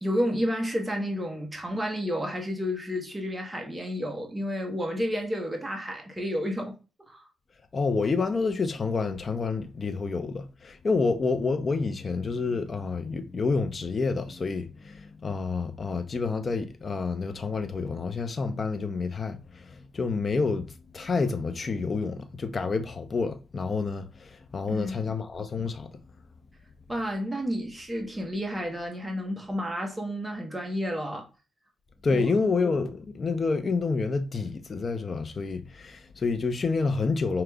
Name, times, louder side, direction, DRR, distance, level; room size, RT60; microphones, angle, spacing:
voice 1, 0.0-6.8 7.0-7.3 24.7-25.1 26.9-31.3 32.1-32.2, equal, 15° right, 0.9 m, -31 dB
voice 2, 7.7-25.9 32.0-37.4, left 4 dB, 40° left, 0.6 m, -28 dB
4.9 x 2.9 x 2.3 m
cardioid pair, 105°, 0 cm